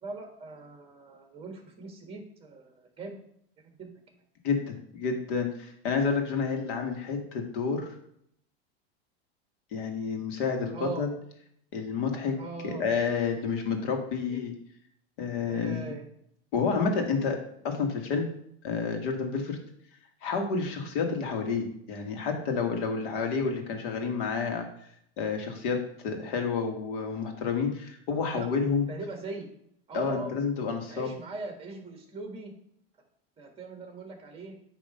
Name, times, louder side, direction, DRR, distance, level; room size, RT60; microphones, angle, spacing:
voice 1, 0.0-3.1 3.6-3.9 10.7-11.0 12.4-12.9 14.3-14.4 15.5-16.1 28.3-28.5 28.9-29.5 29.9-30.3 30.9-32.5 33.4-34.5, right 3 dB, 20° right, 3 dB, 1.6 m, -40 dB
voice 2, 4.4-8.0 9.7-11.1 11.7-12.3 12.6-14.5 15.2-15.9 16.5-17.4 17.6-18.3 18.6-19.6 20.2-24.7 25.2-25.8 26.0-28.8 29.9-31.1, left 5 dB, 55° left, 4 dB, 1.6 m, -29 dB
9.0 x 3.0 x 5.4 m, 0.70 s
supercardioid pair, 140°, 31 cm